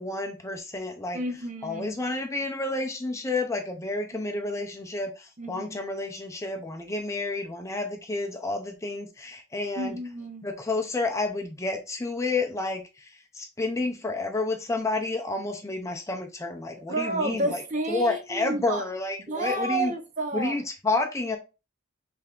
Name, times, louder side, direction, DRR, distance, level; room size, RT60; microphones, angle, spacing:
voice 1, 0.0-1.2 1.6-10.0 10.4-17.6 17.9-19.9 20.3-21.4, left 2 dB, 15° left, 0.5 m, -30 dB
voice 2, 1.1-1.9 5.4-5.8 9.8-10.5 16.9-18.8 19.3-20.5, right 2 dB, 35° right, 0.7 m, -30 dB
3.3 x 3.3 x 3.7 m
head